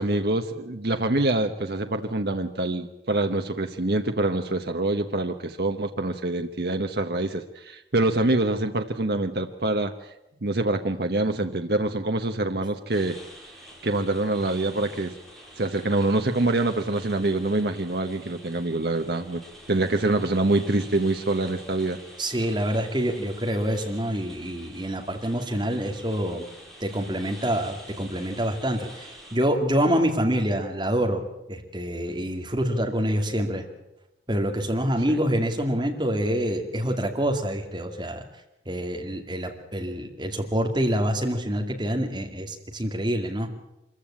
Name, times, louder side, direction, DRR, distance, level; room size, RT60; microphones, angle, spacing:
voice 1, 0.0-9.9 10.4-13.2 13.8-15.1 15.6-19.4 19.7-22.0 35.1-35.2, right 2 dB, 65° right, 6 dB, 1.0 m, -25 dB
sound 1, 12.9-29.4, equal, ahead, 4.4 m, -47 dB
voice 2, 22.2-26.4 26.8-31.2 31.5-33.7 34.3-38.2 38.7-43.5, equal, 25° right, 3 dB, 2.4 m, -26 dB
25.0 x 15.0 x 8.7 m, 0.92 s
head